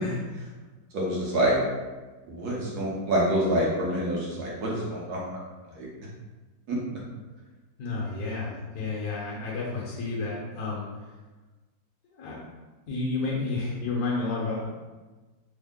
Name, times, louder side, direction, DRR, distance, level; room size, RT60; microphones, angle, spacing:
voice 1, 0.9-1.6 2.3-5.4 5.8-5.9 6.7-6.8, right 1 dB, 65° right, -5 dB, 1.1 m, -26 dB
voice 2, 7.8-10.8 12.1-12.4 12.9-14.7, left 3 dB, 65° left, -5 dB, 1.1 m, -31 dB
3.5 x 2.0 x 3.5 m, 1.2 s
omnidirectional pair, 2.1 m